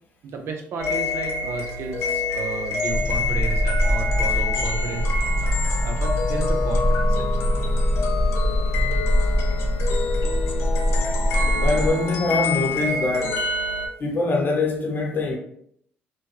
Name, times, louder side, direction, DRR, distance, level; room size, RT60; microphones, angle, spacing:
voice 1, 0.2-5.1 5.8-7.3, right 5 dB, 65° right, 0.5 m, -33 dB
sound 1, 0.8-13.9, left 3 dB, 85° left, 0.5 m, -27 dB
sound 2, 2.9-11.9, equal, 20° right, 1.2 m, -23 dB
voice 2, 11.6-13.5 14.0-15.4, left 3 dB, 45° left, 0.8 m, -23 dB
2.8 x 2.2 x 3.0 m
cardioid pair, 80°, 5 cm